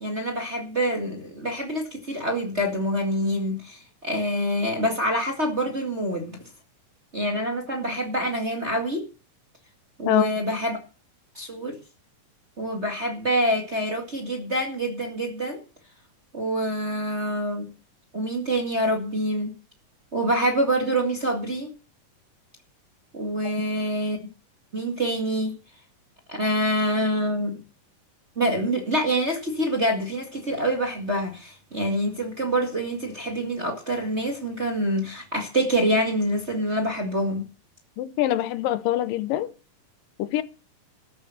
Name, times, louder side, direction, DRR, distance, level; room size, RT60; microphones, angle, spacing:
voice 1, 0.0-6.4 7.1-9.0 10.0-10.8 11.3-11.8 12.6-15.6 16.3-17.7 18.1-19.5 20.1-21.7 23.1-24.2 24.7-25.5 26.3-27.6 28.3-37.4, right 1 dB, 25° right, 1.7 m, -26 dB
voice 2, 38.0-39.5 40.2-40.4, left 13 dB, 80° left, 2.5 m, -24 dB
13.5 x 8.8 x 6.6 m
omnidirectional pair, 3.9 m